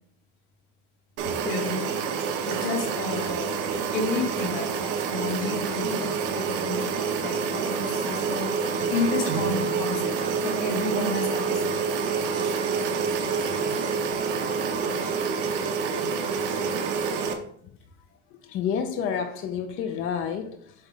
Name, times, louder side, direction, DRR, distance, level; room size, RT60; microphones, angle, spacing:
sound 1, 1.2-17.3, right 5 dB, 55° right, 1.1 m, -27 dB
voice 1, 1.4-2.0 2.5-3.6 3.9-10.2 10.4-11.9, left 3 dB, 70° left, 2.3 m, -31 dB
voice 2, 18.3-20.7, left 7 dB, 35° left, 0.5 m, -29 dB
7.4 x 3.1 x 4.8 m
cardioid pair, 150°, 37 cm